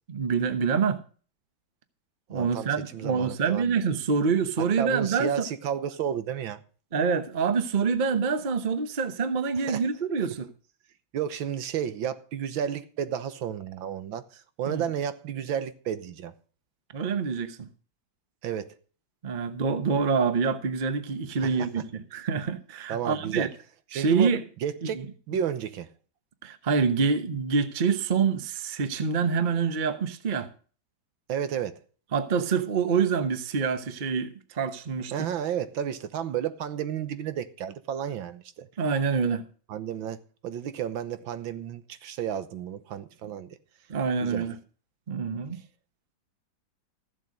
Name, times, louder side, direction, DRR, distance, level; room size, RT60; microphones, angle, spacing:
voice 1, 0.1-1.0 2.3-5.5 6.9-10.5 14.7-14.8 16.9-17.7 19.2-23.5 23.9-24.4 24.8-25.0 26.4-30.5 32.1-35.3 38.8-39.4 43.9-44.6 45.1-45.6, right 5 dB, 35° right, 0.8 m, -26 dB
voice 2, 2.3-3.8 4.8-6.6 9.6-9.8 11.1-16.3 18.4-18.7 21.4-21.8 22.9-23.5 23.9-24.3 24.6-25.9 31.3-31.8 35.1-38.7 39.7-43.5 44.2-44.5, right 9 dB, 85° right, 1.8 m, -32 dB
14.5 x 7.5 x 5.2 m
omnidirectional pair, 2.1 m